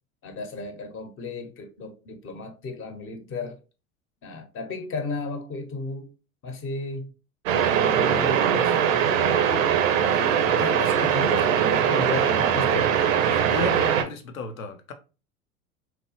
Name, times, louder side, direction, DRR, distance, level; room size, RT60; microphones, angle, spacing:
voice 1, 0.2-3.6 4.2-6.1 6.4-7.1 7.8-9.6 10.1-12.9, left 3 dB, 30° left, 0.7 m, -34 dB
sound 1, 7.5-14.0, right 8 dB, 75° right, 0.5 m, -21 dB
voice 2, 13.3-14.9, left 3 dB, 85° left, 0.5 m, -34 dB
2.8 x 2.2 x 2.8 m
figure-of-eight pair, 80°, 40 cm